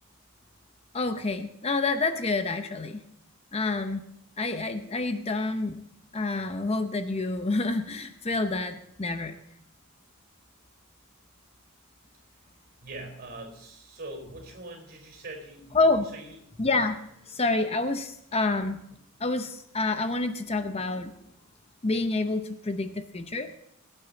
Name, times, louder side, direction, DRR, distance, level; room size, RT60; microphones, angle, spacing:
voice 1, 0.9-3.0 3.5-4.0 4.4-5.8 6.1-9.4 15.7-16.1 16.6-17.0 17.3-18.8 19.2-21.1 21.8-23.5, left 3 dB, 30° left, 8 dB, 0.7 m, -28 dB
voice 2, 12.8-15.8 16.1-16.4, right 2 dB, 45° right, 3 dB, 4.6 m, -42 dB
21.5 x 9.2 x 4.0 m, 0.76 s
head